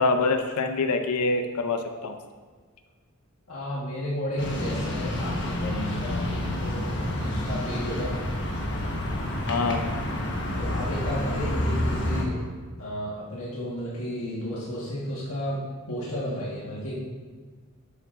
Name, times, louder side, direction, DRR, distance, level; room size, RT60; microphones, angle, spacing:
voice 1, 0.0-2.2 9.5-9.9, left 3 dB, 85° left, 7 dB, 0.6 m, -25 dB
voice 2, 3.5-8.2 10.6-12.4 12.8-17.0, equal, 70° left, -7 dB, 1.6 m, -33 dB
sound 1, 4.4-12.2, left 1 dB, 55° left, 1.3 m, -29 dB
11.5 x 7.1 x 2.6 m, 1.5 s
head